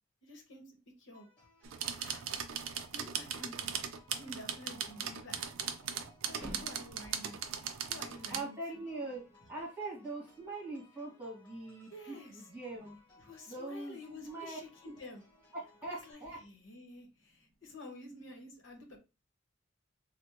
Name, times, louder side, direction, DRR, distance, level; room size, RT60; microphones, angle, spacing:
voice 1, 0.2-1.3 2.0-2.3 2.9-3.7 4.1-5.5 6.3-7.4 7.9-8.5 11.9-12.4 13.2-15.2 15.8-19.0, left 1 dB, 70° left, 2 dB, 1.0 m, -50 dB
sound 1, 1.1-16.1, left 3 dB, 20° left, 1.3 m, -64 dB
sound 2, 1.6-8.4, right 8 dB, 85° right, 0.4 m, -39 dB
voice 2, 8.3-9.2 9.5-13.0 13.5-14.6 15.5-16.4, right 2 dB, 5° right, -5 dB, 1.7 m, -42 dB
3.3 x 2.1 x 2.9 m, 0.28 s
head